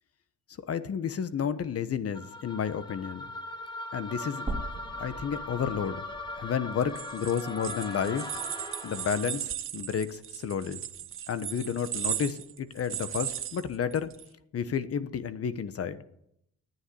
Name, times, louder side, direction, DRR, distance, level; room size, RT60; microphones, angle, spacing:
voice 1, 0.7-3.3 3.9-4.5 5.0-6.0 6.4-8.3 8.8-10.8 11.3-14.1 14.5-16.0, left 7 dB, 50° left, 13 dB, 1.1 m, -31 dB
sound 1, 2.1-9.4, left 2 dB, 15° left, 1.8 m, -40 dB
sound 2, 4.5-8.6 9.0-9.1 10.5-10.6, right 2 dB, 20° right, 2.4 m, -41 dB
sound 3, 6.8-14.3, right 10 dB, 45° right, 0.7 m, -37 dB
11.5 x 9.6 x 9.6 m, 0.77 s
cardioid pair, 90°, 30 cm